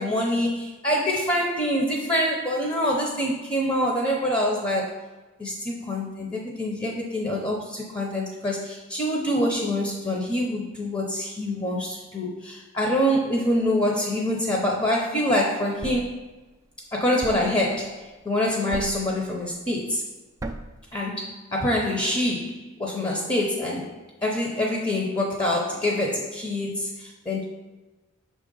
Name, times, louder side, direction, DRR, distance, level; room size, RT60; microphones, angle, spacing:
voice 1, 0.0-5.0 5.4-16.2 16.9-20.0 20.9-23.9 24.2-27.4, left 1 dB, 25° left, -1 dB, 0.7 m, -25 dB
Thump thud, 15.8-16.2 17.2-17.6 18.7-19.1 20.4-20.8, right 2 dB, 15° right, 0.3 m, -35 dB
5.7 x 3.8 x 5.3 m, 1.2 s
head